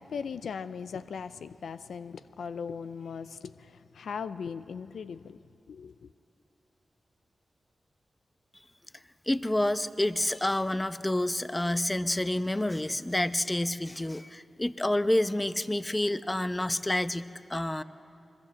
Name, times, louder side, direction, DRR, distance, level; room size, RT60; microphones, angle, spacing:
voice 1, 0.0-5.4 5.7-6.1, left 6 dB, 90° left, 0.5 m, -39 dB
voice 2, 9.3-17.8, left 1 dB, 20° left, 0.8 m, -28 dB
25.5 x 21.5 x 7.6 m
cardioid pair, 50°, 0 cm